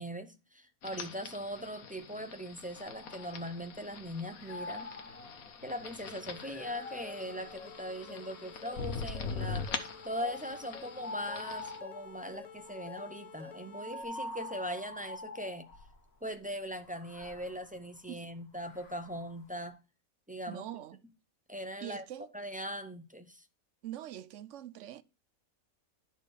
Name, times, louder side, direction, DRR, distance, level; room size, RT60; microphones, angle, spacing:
voice 1, 0.0-4.9 5.6-15.7 16.2-19.8 20.3-20.7 21.5-22.0 22.3-23.5, equal, 10° right, 0.4 m, -40 dB
sound 1, 0.8-11.8, left 5 dB, 85° left, 1.5 m, -43 dB
sound 2, 2.7-3.9 4.3-8.7 9.4-16.0 16.8-19.4, left 2 dB, 50° left, 1.4 m, -47 dB
sound 3, 6.1-14.0, left 5 dB, 35° left, 0.9 m, -51 dB
voice 2, 20.5-21.0 21.8-22.3 23.8-25.0, right 12 dB, 65° right, 0.9 m, -43 dB
11.5 x 4.4 x 4.8 m
omnidirectional pair, 1.5 m